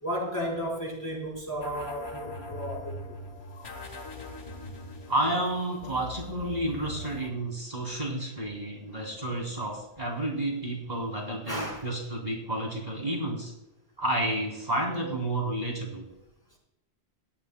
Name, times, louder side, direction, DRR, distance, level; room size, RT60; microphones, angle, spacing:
voice 1, 0.0-3.1 11.5-11.8, equal, 15° left, -3 dB, 4.4 m, -33 dB
sound 1, 1.6-7.3, left 1 dB, 80° left, 1.8 m, -41 dB
voice 2, 5.1-13.5 14.0-16.0, right 1 dB, 40° right, -2 dB, 3.2 m, -31 dB
18.0 x 12.5 x 2.2 m, 0.89 s
omnidirectional pair, 1.1 m